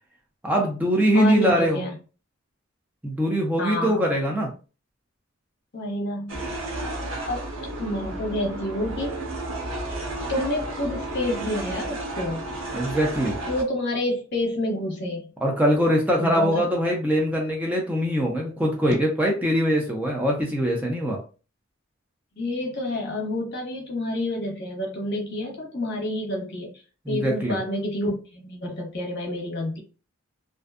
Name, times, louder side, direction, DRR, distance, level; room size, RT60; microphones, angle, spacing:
voice 1, 0.4-1.8 3.0-4.5 12.7-13.4 15.4-21.2 27.1-27.6, equal, 10° right, -1 dB, 0.4 m, -22 dB
voice 2, 1.1-1.9 3.6-4.0 5.7-6.4 7.3-7.5 7.8-9.2 10.3-12.4 13.5-15.3 16.2-16.6 22.4-26.7 27.1-29.8, left 1 dB, 55° left, -1 dB, 0.8 m, -28 dB
sound 1, 6.3-13.6, right 2 dB, 75° right, 0.8 m, -32 dB
2.5 x 2.1 x 2.4 m, 0.35 s
head